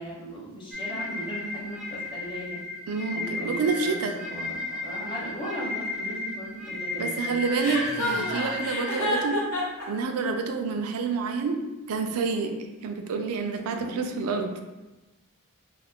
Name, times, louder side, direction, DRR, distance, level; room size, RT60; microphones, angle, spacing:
voice 1, 0.0-2.6 3.1-7.4 8.1-8.4 13.6-14.1, right 1 dB, 20° left, -5 dB, 0.7 m, -38 dB
sound 1, 0.7-9.0, left 2 dB, 5° right, 0.3 m, -34 dB
voice 2, 2.9-4.2 7.0-9.4 9.9-12.6 12.8-14.6, right 4 dB, 80° right, 5 dB, 0.4 m, -28 dB
Chuckle chortle, 7.6-9.9, left 1 dB, 65° left, 0.8 m, -29 dB
2.5 x 2.4 x 3.5 m, 1.1 s
head